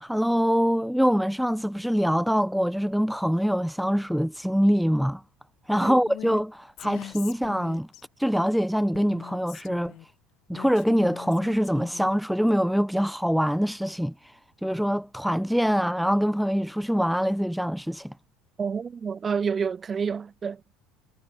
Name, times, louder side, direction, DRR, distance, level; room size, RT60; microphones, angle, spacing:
voice 1, 0.0-5.2 5.7-7.9 8.2-10.0 10.5-18.1, equal, ahead, 1.7 m, -24 dB
Female speech woman speaking, 6.1-6.4 6.8-8.0 8.9-10.1 10.5-12.2, left 15 dB, 40° left, 5.4 m, -42 dB
voice 2, 18.6-20.7, right 6 dB, 20° right, 3.2 m, -29 dB
cardioid pair, 175°, 0 cm